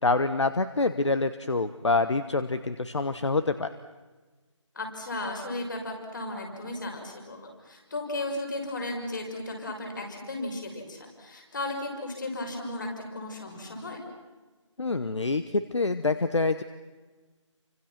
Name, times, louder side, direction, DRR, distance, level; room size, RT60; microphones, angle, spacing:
voice 1, 0.0-3.7 14.8-16.6, left 3 dB, 65° left, 11 dB, 1.3 m, -26 dB
voice 2, 4.7-14.0, left 2 dB, 40° left, 1 dB, 6.4 m, -35 dB
29.0 x 25.5 x 6.0 m, 1.3 s
figure-of-eight pair, 170°, 16 cm